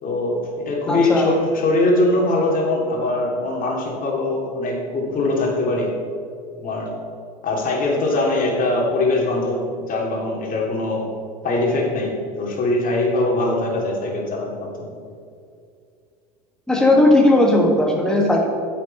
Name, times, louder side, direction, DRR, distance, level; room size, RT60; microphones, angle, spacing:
voice 1, 0.0-5.9 6.6-6.9 7.4-9.6 9.9-11.1 11.4-14.9, left 2 dB, 40° left, -1 dB, 3.0 m, -22 dB
voice 2, 0.9-1.3 16.7-18.5, left 1 dB, 5° left, 0 dB, 1.5 m, -16 dB
9.4 x 7.6 x 5.6 m, 2.3 s
hypercardioid pair, 85°, 21 cm